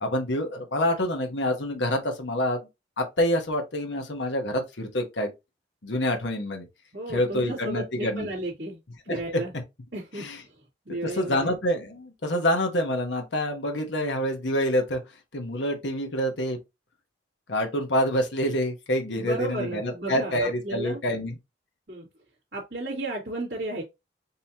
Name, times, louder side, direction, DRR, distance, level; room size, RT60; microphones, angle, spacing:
voice 1, 0.0-2.6 3.0-5.3 5.8-6.7 7.1-8.3 9.1-9.2 10.2-10.4 11.0-15.0 15.3-16.6 17.5-21.4, equal, 85° left, 1.1 m, -27 dB
voice 2, 6.9-8.8 9.1-9.5 9.9-10.6 10.9-11.6 19.1-21.0 21.9-22.1 22.5-23.8, right 1 dB, 70° right, 2.4 m, -34 dB
5.3 x 2.9 x 2.8 m
head